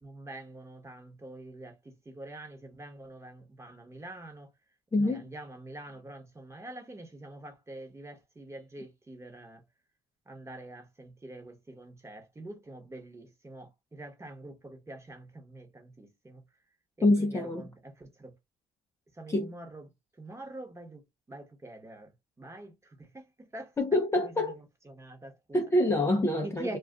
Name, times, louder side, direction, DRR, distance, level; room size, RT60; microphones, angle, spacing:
voice 1, 0.0-4.5 4.9-9.6 10.3-16.4 17.2-18.4 19.1-19.9 20.2-23.8 24.1-25.6 26.4-26.8, right 1 dB, 15° right, 1.0 m, -45 dB
voice 2, 4.9-5.2 17.0-17.6 19.3-19.5 23.8-24.6 25.5-26.8, left 1 dB, 15° left, 0.5 m, -26 dB
2.3 x 2.3 x 3.6 m
cardioid pair, 110°, 17 cm